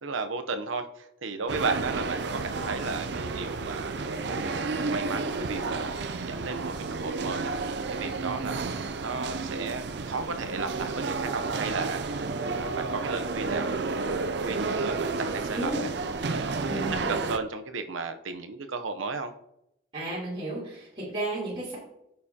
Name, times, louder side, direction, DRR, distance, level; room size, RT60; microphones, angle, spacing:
voice 1, 0.0-3.9 4.3-5.9 6.2-15.9 16.3-19.3, right 4 dB, 85° right, 8 dB, 0.8 m, -34 dB
sound 1, 1.5-17.4, right 3 dB, 60° right, 0.5 m, -31 dB
voice 2, 15.5-15.8 16.6-17.1 19.9-21.8, right 1 dB, 30° right, -9 dB, 3.3 m, -33 dB
9.5 x 6.8 x 2.8 m, 0.80 s
head